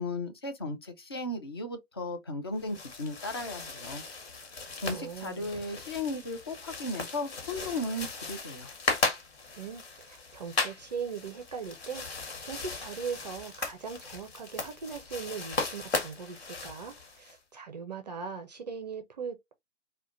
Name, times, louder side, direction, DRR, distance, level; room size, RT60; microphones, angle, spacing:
voice 1, 0.0-4.0 4.5-8.7, left 2 dB, 20° left, 0.4 m, -36 dB
sound 1, 2.5-17.4, left 3 dB, 55° left, 1.4 m, -37 dB
voice 2, 4.9-5.5 9.6-12.0 12.4-19.5, right 6 dB, 35° right, 0.5 m, -40 dB
4.7 x 2.2 x 2.5 m
figure-of-eight pair, 125°, 37 cm